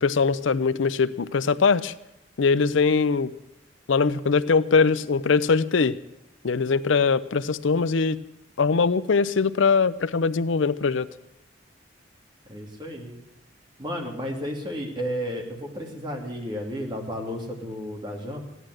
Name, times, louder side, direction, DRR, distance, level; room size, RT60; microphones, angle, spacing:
voice 1, 0.0-1.9 2.4-3.3 3.9-6.0 6.4-8.2 8.6-11.1, left 5 dB, 75° left, 15 dB, 0.5 m, -21 dB
voice 2, 12.5-13.2 13.8-18.4, equal, 25° right, 1 dB, 2.5 m, -32 dB
15.5 x 11.0 x 7.7 m, 0.87 s
head